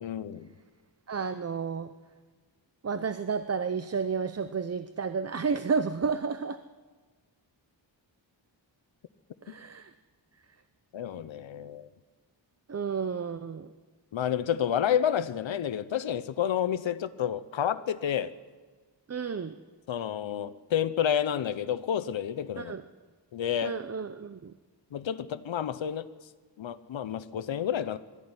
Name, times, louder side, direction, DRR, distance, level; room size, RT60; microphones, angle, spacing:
voice 1, 0.0-0.5 10.9-11.9 14.1-18.3 19.9-22.8 23.3-23.8 24.9-26.1 26.6-28.0, left 9 dB, 90° left, 13 dB, 0.8 m, -30 dB
voice 2, 1.1-1.9 2.8-6.6 9.4-9.9 12.7-13.7 19.1-19.6 22.6-22.8 23.6-24.5, right 5 dB, 35° right, 11 dB, 0.7 m, -31 dB
21.0 x 13.5 x 9.6 m, 1.4 s
wide cardioid pair, 120°, 45 cm